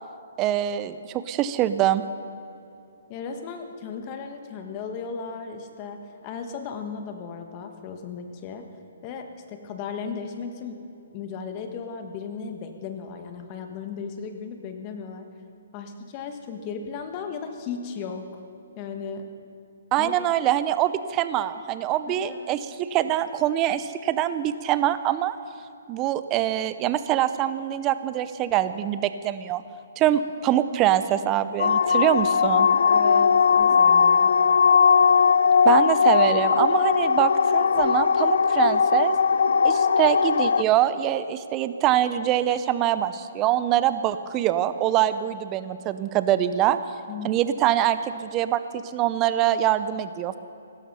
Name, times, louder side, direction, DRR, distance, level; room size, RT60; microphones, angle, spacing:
voice 1, 0.4-2.0 19.9-25.3 25.9-29.6 30.0-32.7 35.6-39.2 39.6-46.8 47.2-50.4, right 12 dB, 20° right, 13 dB, 0.6 m, -24 dB
voice 2, 3.1-8.6 9.0-10.8 11.1-15.3 15.7-18.4 18.8-19.3 20.0-20.1 22.1-22.6 32.9-34.3 47.1-47.4, left 6 dB, 30° left, 6 dB, 1.4 m, -36 dB
sound 1, 31.6-40.6, left 6 dB, 75° left, 0.4 m, -19 dB
16.5 x 12.5 x 5.6 m, 2.8 s
hypercardioid pair, 155°, 0 cm